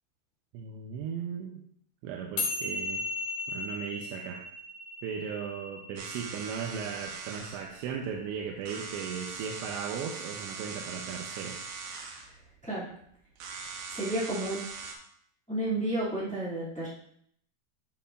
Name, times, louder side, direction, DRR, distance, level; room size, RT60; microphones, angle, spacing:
voice 1, 0.5-1.6 2.0-3.0 3.5-4.4 5.0-11.7, right 7 dB, 90° right, 1 dB, 3.0 m, -37 dB
sound 1, 2.4-8.9, left 2 dB, 75° left, 3.8 m, -37 dB
sound 2, 6.0-14.9, right 5 dB, 70° right, 2.4 m, -41 dB
voice 2, 13.9-14.6 15.5-16.9, right 1 dB, 10° left, -9 dB, 0.4 m, -31 dB
11.0 x 5.7 x 2.5 m, 0.69 s
omnidirectional pair, 5.0 m